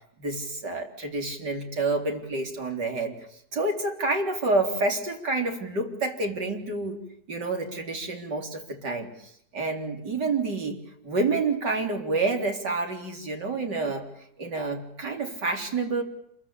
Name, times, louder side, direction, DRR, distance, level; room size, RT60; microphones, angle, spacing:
voice 1, 0.2-3.2 3.5-7.0 7.3-10.8 11.0-14.0 14.4-16.0, right 3 dB, 80° right, 3 dB, 4.3 m, -28 dB
27.0 x 22.5 x 8.5 m, 0.73 s
omnidirectional pair, 1.8 m